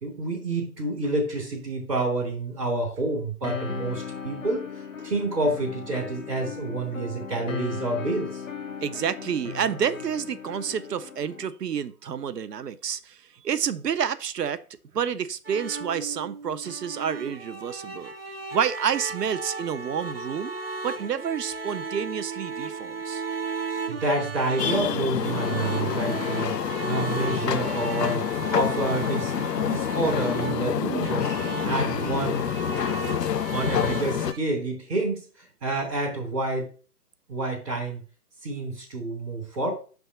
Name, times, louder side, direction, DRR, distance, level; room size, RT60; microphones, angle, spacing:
voice 1, 0.0-8.4 23.9-26.5 26.8-31.3 31.6-32.5 33.5-35.2 35.6-36.7 37.3-38.0 38.4-39.7, right 2 dB, ahead, 0.7 m, -28 dB
sound 1, 3.4-11.5, left 6 dB, 55° left, 0.8 m, -37 dB
voice 2, 8.8-13.2 13.4-14.6 14.9-18.1 18.5-20.6 20.8-23.2, right 8 dB, 80° right, 0.7 m, -29 dB
sound 2, 15.4-34.4, right 3 dB, 40° right, 0.4 m, -35 dB
sound 3, 24.6-34.3, left 8 dB, 85° left, 0.6 m, -27 dB
6.0 x 3.5 x 5.5 m
figure-of-eight pair, 155°, 48 cm